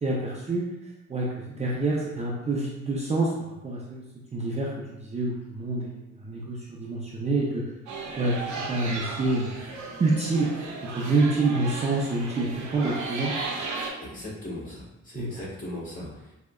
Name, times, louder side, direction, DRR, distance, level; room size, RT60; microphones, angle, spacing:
voice 1, 0.0-0.6 1.1-3.3 3.6-4.0 4.3-7.6 8.2-8.4 8.7-9.5 10.0-10.5 10.8-13.3 15.1-15.3, right 2 dB, 20° right, -4 dB, 0.5 m, -27 dB
sound 1, 7.9-13.9, right 3 dB, 75° right, 0.7 m, -35 dB
voice 2, 14.0-16.4, left 1 dB, 25° left, -6 dB, 1.4 m, -38 dB
4.6 x 2.1 x 2.2 m, 0.98 s
cardioid pair, 90°, 30 cm